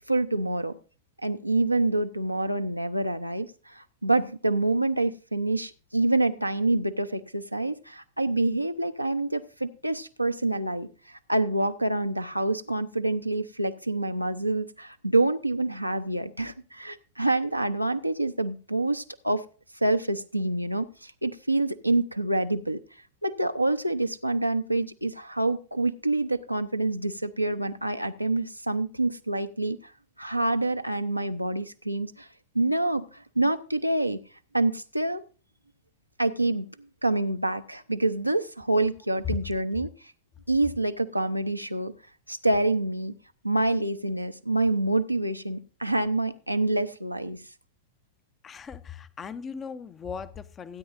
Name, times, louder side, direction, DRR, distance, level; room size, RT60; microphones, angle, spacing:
voice 1, 0.1-0.8 1.2-19.4 19.8-22.8 23.2-29.9 30.2-32.3 32.5-34.2 34.5-35.2 36.2-36.7 37.0-39.9 40.5-41.9 42.3-43.2 43.4-47.4, right 2 dB, 90° right, 8 dB, 0.6 m, -27 dB
voice 2, 48.4-50.8, left 6 dB, 25° left, 14 dB, 0.6 m, -37 dB
16.0 x 9.4 x 2.6 m, 0.37 s
figure-of-eight pair, 90°, 0 cm